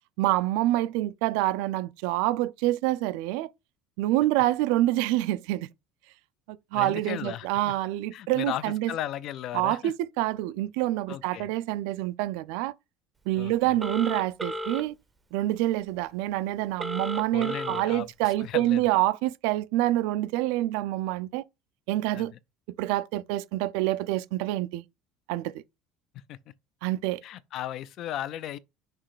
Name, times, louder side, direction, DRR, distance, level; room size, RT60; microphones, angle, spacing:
voice 1, 0.2-3.5 4.0-5.7 6.5-8.9 9.5-12.7 13.3-14.9 15.3-21.4 21.9-22.3 22.8-24.8 25.3-25.5 26.8-27.2, right 15 dB, 75° right, 0.4 m, -27 dB
voice 2, 6.7-7.8 8.1-9.9 11.1-11.5 13.4-13.8 17.3-18.1 18.4-18.9 22.1-22.3 26.3-26.5 27.2-28.6, left 12 dB, 45° left, 0.4 m, -36 dB
Telephone, 13.8-14.8 16.8-17.8, equal, 10° right, 0.6 m, -33 dB
6.0 x 3.2 x 4.9 m
cardioid pair, 170°, 0 cm